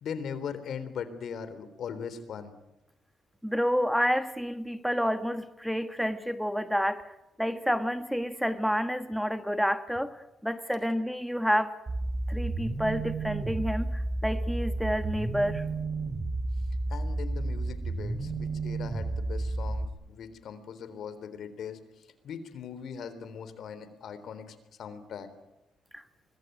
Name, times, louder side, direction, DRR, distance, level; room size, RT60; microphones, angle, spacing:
voice 1, 0.0-2.5 16.9-21.8 22.2-25.3, left 7 dB, 65° left, 12 dB, 3.7 m, -40 dB
voice 2, 3.4-7.0 7.4-10.2 10.4-11.7 12.3-15.6 25.9-26.0, equal, ahead, 10 dB, 1.3 m, -29 dB
sound 1, 11.9-19.9, right 2 dB, 30° right, 4.3 m, -32 dB
25.0 x 21.5 x 9.3 m, 0.92 s
cardioid pair, 90°, 0 cm